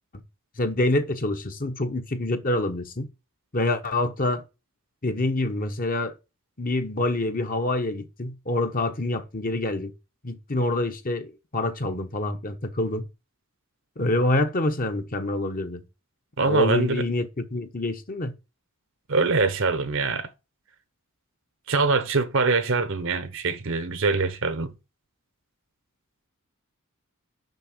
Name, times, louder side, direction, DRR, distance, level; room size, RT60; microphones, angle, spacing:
voice 1, 0.6-3.1 3.5-4.4 5.0-6.1 6.6-9.9 10.2-13.1 14.0-15.8 16.4-18.3, left 2 dB, 40° left, 1.1 m, -26 dB
voice 2, 16.4-17.0 19.1-20.3 21.7-24.7, right 4 dB, 60° right, 0.9 m, -24 dB
6.6 x 5.9 x 6.0 m
head